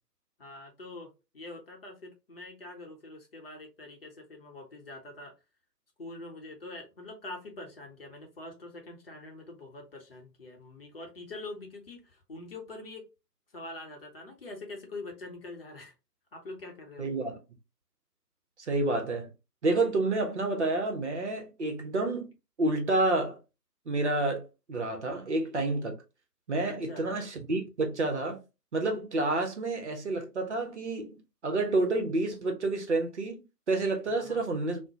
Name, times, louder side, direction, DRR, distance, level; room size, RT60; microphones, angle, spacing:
voice 1, 0.4-5.3 6.0-13.0 13.5-15.9 16.3-17.1 26.7-27.1 34.1-34.4, left 2 dB, 35° left, 0.8 m, -44 dB
voice 2, 17.0-17.4 18.7-19.3 19.6-22.3 22.6-23.4 23.9-24.4 24.7-25.9 26.5-28.4 28.7-34.8, right 2 dB, 45° right, 0.8 m, -29 dB
3.6 x 2.1 x 2.7 m
figure-of-eight pair, 140°, 48 cm